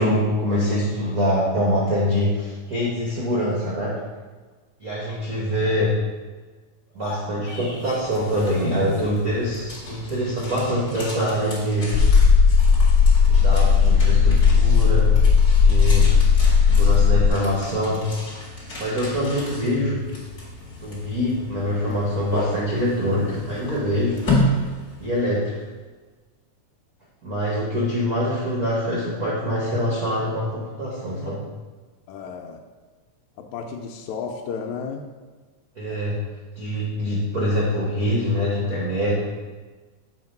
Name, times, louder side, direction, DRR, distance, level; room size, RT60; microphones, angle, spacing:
voice 1, 0.0-4.0 4.8-6.0 6.9-12.0 13.3-15.2 15.6-16.1 16.7-18.1 18.8-20.0 20.8-24.2 25.0-25.5 27.2-31.4 35.8-36.2 36.5-39.1, equal, 75° right, -5 dB, 0.8 m, -24 dB
sound 1, 6.9-8.1, left 3 dB, 50° left, 2.0 m, -38 dB
sound 2, 7.7-25.5, left 1 dB, 35° left, 1.7 m, -32 dB
sound 3, 11.9-17.3, left 6 dB, ahead, 1.2 m, -15 dB
voice 2, 32.1-32.6 33.5-35.1, left 6 dB, 80° left, 2 dB, 1.9 m, -32 dB
7.8 x 2.9 x 5.1 m, 1.3 s
omnidirectional pair, 3.4 m